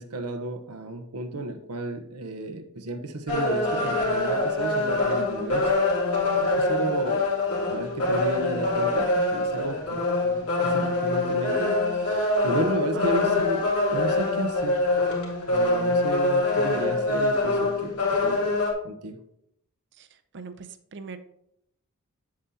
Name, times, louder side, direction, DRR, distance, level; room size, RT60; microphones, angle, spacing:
voice 1, 0.0-5.7 6.6-7.3 7.6-10.0 10.6-14.9 15.5-18.5 18.8-19.2, right 2 dB, 85° right, 5 dB, 0.9 m, -33 dB
sound 1, 3.3-18.7, left 2 dB, 75° left, 2.1 m, -24 dB
voice 2, 5.1-5.6 12.9-13.5 20.0-20.1 20.3-21.2, right 4 dB, 55° right, 11 dB, 0.6 m, -39 dB
7.8 x 7.4 x 2.8 m, 0.76 s
head